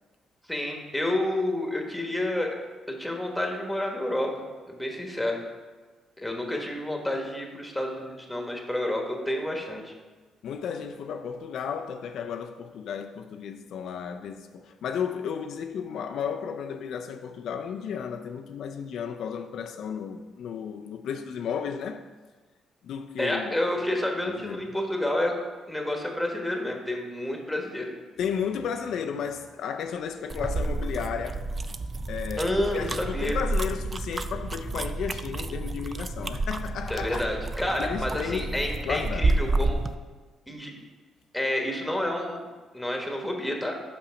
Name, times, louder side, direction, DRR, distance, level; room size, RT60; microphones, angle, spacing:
voice 1, 0.5-2.5 2.9-5.4 6.2-9.9 23.2-25.3 25.7-27.9 32.4-33.4 36.9-39.8 40.5-40.7 41.3-42.4 42.7-43.8, left 1 dB, 5° left, 1.3 m, -29 dB
voice 2, 10.4-22.1 22.8-23.6 24.3-24.7 28.2-31.4 32.1-37.2 37.8-39.3, left 7 dB, 75° left, 0.4 m, -33 dB
sound 1, 30.3-40.0, right 2 dB, 30° right, 0.3 m, -30 dB
5.7 x 5.2 x 5.7 m
cardioid pair, 90°, 0 cm